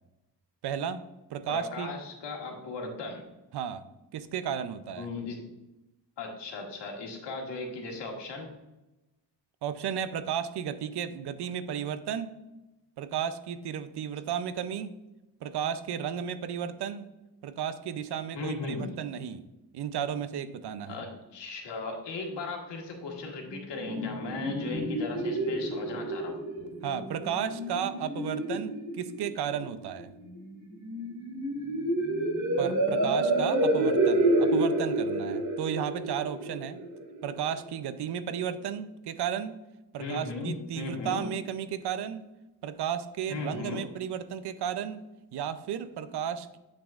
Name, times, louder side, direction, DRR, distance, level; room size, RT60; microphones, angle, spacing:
voice 1, 0.6-1.0 1.3-1.9 3.5-3.9 4.1-5.1 9.6-12.3 13.0-14.9 15.4-17.1 17.4-19.4 19.7-21.0 26.8-30.1 32.6-36.8 37.2-39.6 39.9-42.3 42.6-45.0 45.3-46.6, right 8 dB, 70° right, 12 dB, 0.6 m, -33 dB
voice 2, 1.5-3.2 5.0-5.4 6.2-8.5 18.3-18.9 20.9-26.4 40.0-41.3 43.3-43.9, left 3 dB, 90° left, 1 dB, 1.6 m, -37 dB
sound 1, 23.4-37.4, right 1 dB, 45° right, 2.2 m, -29 dB
8.4 x 6.1 x 2.4 m, 1.0 s
wide cardioid pair, 140°, 41 cm